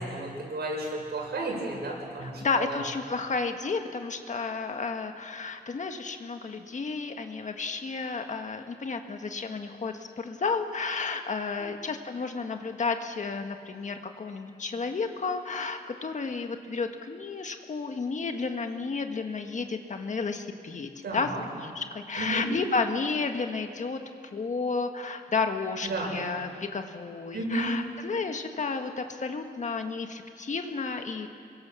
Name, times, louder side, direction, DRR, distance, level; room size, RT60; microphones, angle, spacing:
voice 1, 0.0-2.8 11.6-11.7 21.0-21.4 22.2-22.5 25.8-26.2 27.3-27.8, right 2 dB, 70° right, -1 dB, 6.8 m, -32 dB
voice 2, 2.2-21.3 21.5-24.0 24.3-31.3, left 4 dB, 45° left, 6 dB, 1.5 m, -32 dB
27.5 x 23.0 x 7.0 m, 2.3 s
wide cardioid pair, 140°, 17 cm